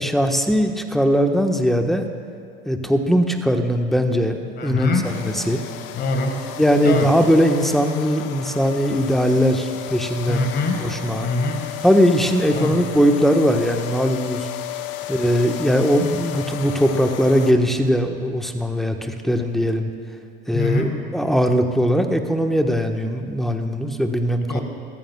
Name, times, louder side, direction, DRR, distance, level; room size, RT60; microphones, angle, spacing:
voice 1, 0.0-2.0 2.7-5.6 6.6-10.5 10.8-11.3 11.8-14.5 15.1-19.9 20.5-24.6, equal, ahead, 5 dB, 1.3 m, -20 dB
voice 2, 4.6-5.2 5.9-6.4 6.8-7.1 10.3-10.8 11.2-11.7 12.5-12.8 20.5-20.9 24.5-24.6, left 3 dB, 35° left, 4 dB, 1.8 m, -23 dB
sound 1, 5.0-17.5, left 12 dB, 55° left, 1.0 m, -33 dB
24.0 x 14.5 x 2.3 m, 2.3 s
hypercardioid pair, 80°, 29 cm